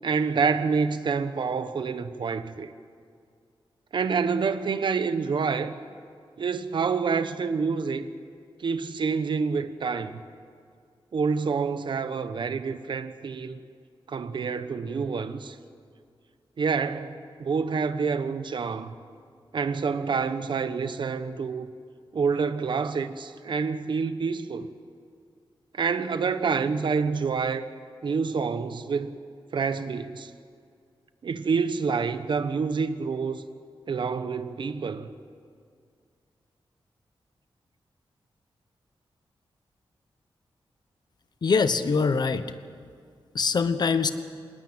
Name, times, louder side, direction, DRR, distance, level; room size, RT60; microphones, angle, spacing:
voice 1, 0.0-2.7 3.9-5.7 6.4-8.1 8.6-10.2 11.1-13.6 14.1-15.6 16.6-18.9 19.5-21.7 22.1-24.7 25.7-27.7 28.0-29.1 29.5-30.3 31.2-33.4 33.9-35.1, right 5 dB, 60° right, 1.1 m, -27 dB
voice 2, 41.4-42.5 43.3-44.1, left 5 dB, 50° left, 1.1 m, -23 dB
20.5 x 19.5 x 9.0 m
wide cardioid pair, 180°, 9 cm